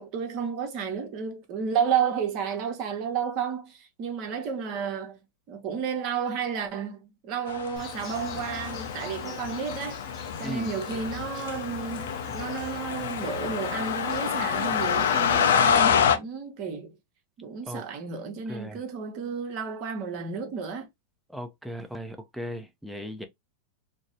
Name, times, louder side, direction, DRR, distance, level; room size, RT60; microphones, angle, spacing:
voice 1, 0.0-5.2 5.5-10.0 10.4-17.0 17.4-20.9, right 6 dB, 50° right, 0.9 m, -32 dB
sound 1, 7.5-16.2, left 7 dB, 75° left, 0.4 m, -27 dB
Insect, 7.8-15.8, left 5 dB, 40° left, 0.7 m, -42 dB
voice 2, 18.5-18.8 21.3-23.3, equal, ahead, 0.5 m, -37 dB
2.6 x 2.0 x 2.5 m
hypercardioid pair, 105°, 0 cm